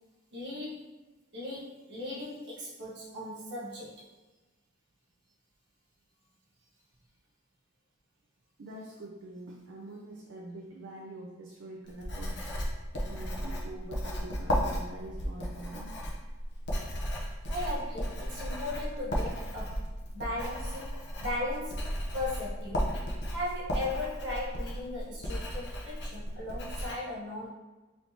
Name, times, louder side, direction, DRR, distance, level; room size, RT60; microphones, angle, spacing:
voice 1, 0.3-0.9 1.3-4.0 17.5-19.9 20.1-23.0 23.3-27.5, left 2 dB, 60° right, -7 dB, 1.2 m, -37 dB
voice 2, 8.6-12.6 12.9-16.1, right 1 dB, 80° right, -2 dB, 0.5 m, -45 dB
Writing, 11.9-26.9, equal, 60° left, 0.8 m, -35 dB
4.2 x 3.3 x 2.8 m, 1.2 s
head